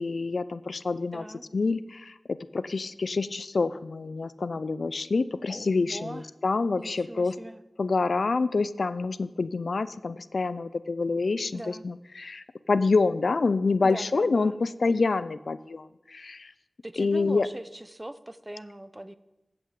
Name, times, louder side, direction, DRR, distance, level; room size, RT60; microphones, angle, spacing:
voice 1, 0.0-1.2 1.5-7.3 7.8-16.5 17.0-17.5, left 3 dB, 80° left, 15 dB, 0.4 m, -27 dB
voice 2, 1.1-1.5 5.5-6.3 6.8-7.6 11.5-11.9 13.8-14.6 16.8-19.2, right 1 dB, 20° right, 14 dB, 0.5 m, -40 dB
11.0 x 7.8 x 4.7 m, 0.99 s
wide cardioid pair, 45°, 0 cm